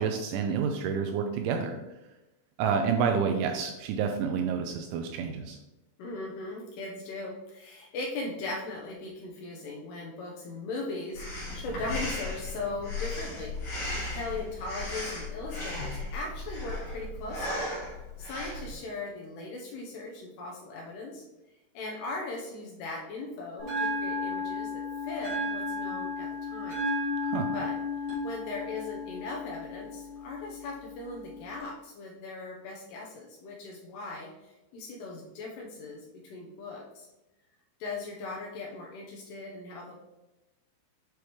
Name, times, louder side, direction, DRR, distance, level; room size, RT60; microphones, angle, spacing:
voice 1, 0.0-1.8 2.6-5.6 27.2-27.5, right 6 dB, 85° right, 4 dB, 2.8 m, -29 dB
voice 2, 6.0-17.7 18.2-21.2 21.7-24.7 25.0-26.9 27.5-27.7 28.2-37.1 37.8-39.9, left 3 dB, 80° left, -1 dB, 2.5 m, -39 dB
Breathing, 11.2-18.8, left 2 dB, 50° left, 3.4 m, -36 dB
Bell, 23.6-31.6, left 2 dB, 50° right, 3.0 m, -34 dB
8.4 x 4.9 x 3.1 m, 0.99 s
omnidirectional pair, 5.6 m